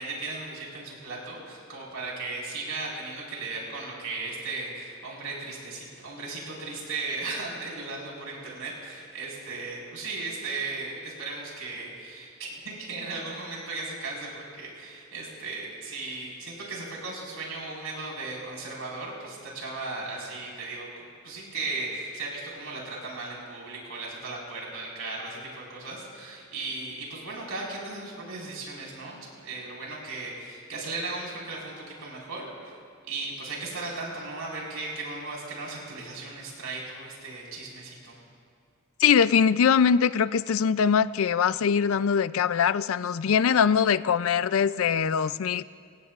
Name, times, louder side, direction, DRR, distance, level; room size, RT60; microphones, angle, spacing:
voice 1, 0.0-20.9 21.2-32.5 33.1-38.2, right 3 dB, 90° right, -3 dB, 4.6 m, -36 dB
voice 2, 39.0-45.6, left 7 dB, 75° left, 16 dB, 0.4 m, -22 dB
26.0 x 16.5 x 2.5 m, 2.2 s
head